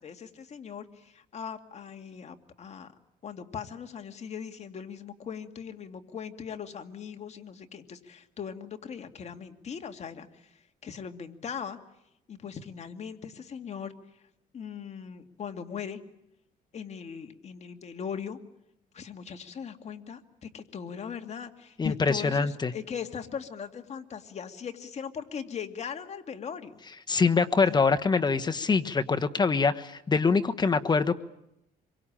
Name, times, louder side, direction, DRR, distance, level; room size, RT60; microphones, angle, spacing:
voice 1, 0.0-2.9 3.2-11.8 12.3-13.9 14.5-16.0 16.7-18.4 18.9-26.8 27.7-27.8, left 7 dB, 40° left, 6 dB, 2.3 m, -40 dB
sound 1, 21.7-22.3, left 8 dB, 55° left, 1.0 m, -36 dB
voice 2, 21.8-22.7 27.1-31.2, left 4 dB, 25° left, 9 dB, 1.3 m, -24 dB
26.0 x 23.5 x 8.9 m, 0.83 s
cardioid pair, 110°, 17 cm